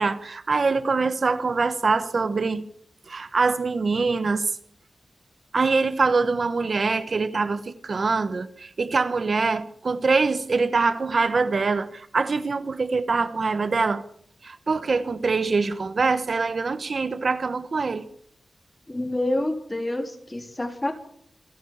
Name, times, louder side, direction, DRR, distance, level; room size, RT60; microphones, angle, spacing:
voice 1, 0.0-2.6 3.1-4.4 5.5-14.0 14.4-18.0, right 4 dB, 50° right, 1.2 m, -24 dB
voice 2, 18.9-20.9, left 1 dB, 15° left, 3.6 m, -27 dB
28.0 x 11.0 x 8.8 m
wide cardioid pair, 125°, 0 cm